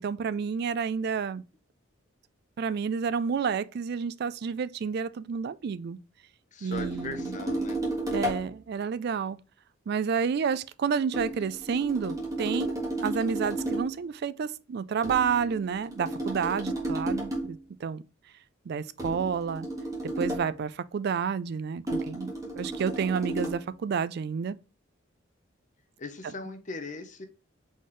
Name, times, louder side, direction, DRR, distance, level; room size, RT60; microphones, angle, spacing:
voice 1, 0.0-1.4 2.6-6.0 6.6-7.2 8.1-9.4 9.9-12.7 13.0-18.0 18.7-19.7 20.2-24.6, right 6 dB, 50° right, 0.3 m, -30 dB
voice 2, 6.5-7.8 26.0-27.3, left 3 dB, 40° left, 0.7 m, -39 dB
sound 1, 6.7-8.5 11.1-14.0 15.0-17.6 19.0-20.6 21.9-23.7, right 1 dB, 15° right, 1.6 m, -33 dB
4.2 x 3.8 x 3.1 m
head